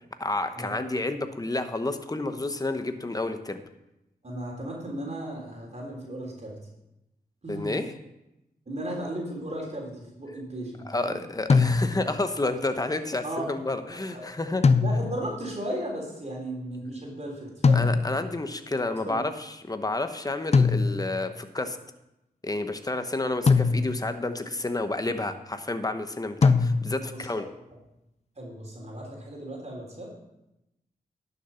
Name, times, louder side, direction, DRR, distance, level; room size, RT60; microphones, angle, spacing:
voice 1, 0.2-3.6 7.5-7.9 10.8-14.6 17.7-21.8 22.4-27.4, left 2 dB, 25° left, 8 dB, 1.0 m, -30 dB
voice 2, 4.2-6.6 7.4-7.8 8.7-11.2 13.2-13.5 14.1-14.2 14.8-17.9 18.9-19.2 27.2-27.5 28.4-30.1, right 1 dB, 45° right, -2 dB, 3.6 m, -36 dB
sound 1, 11.5-12.2 14.6-15.4 17.6-18.4 20.5-21.3 23.5-24.2 26.4-27.2, left 4 dB, 40° left, 0.6 m, -22 dB
11.0 x 6.9 x 5.7 m, 0.90 s
cardioid pair, 55°, 16 cm